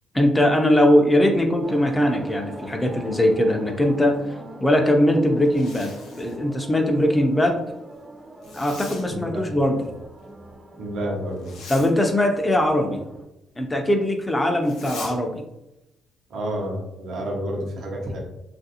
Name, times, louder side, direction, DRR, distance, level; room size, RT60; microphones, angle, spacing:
voice 1, 0.1-4.2 4.6-7.6 8.5-9.9 11.7-13.0 13.6-15.4, left 1 dB, 15° left, 3 dB, 0.5 m, -20 dB
sound 1, 1.6-13.2, right 2 dB, 35° right, 0.6 m, -41 dB
Zipper (clothing), 5.4-6.4 8.4-9.1 11.4-11.9 14.6-15.2, left 4 dB, 90° left, 0.7 m, -40 dB
voice 2, 9.1-9.4 10.8-11.5 16.3-18.2, right 1 dB, 70° right, -1 dB, 0.7 m, -29 dB
3.1 x 2.5 x 2.7 m, 0.90 s
cardioid pair, 90°, 0 cm